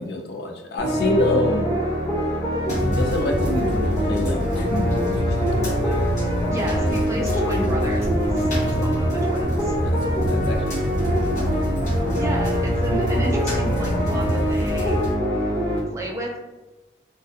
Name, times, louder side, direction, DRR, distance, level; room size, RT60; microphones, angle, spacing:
voice 1, 0.0-1.7 2.8-6.1 8.6-8.8 9.8-11.3, left 2 dB, 65° left, 3 dB, 0.4 m, -27 dB
sound 1, 0.8-15.8, equal, 10° left, 0.9 m, -24 dB
sound 2, 2.7-15.1, right 1 dB, 45° left, 1.0 m, -27 dB
voice 2, 6.5-9.8 12.2-15.0 15.9-16.4, equal, 15° right, -2 dB, 0.4 m, -32 dB
2.2 x 2.1 x 2.7 m, 1.1 s
head